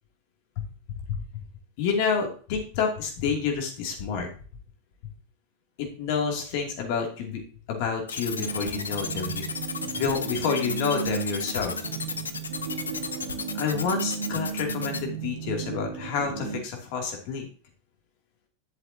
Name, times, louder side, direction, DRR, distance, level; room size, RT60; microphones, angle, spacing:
voice 1, 1.8-4.3 5.8-7.4 7.7-9.4 9.8-11.9 13.5-17.5, left 6 dB, 45° left, 2 dB, 2.6 m, -29 dB
sound 1, 8.1-15.0, left 5 dB, 70° left, 0.8 m, -33 dB
sound 2, 8.3-16.6, right 7 dB, 55° right, 1.4 m, -35 dB
11.0 x 7.9 x 2.8 m, 0.40 s
figure-of-eight pair, 90°, 0 cm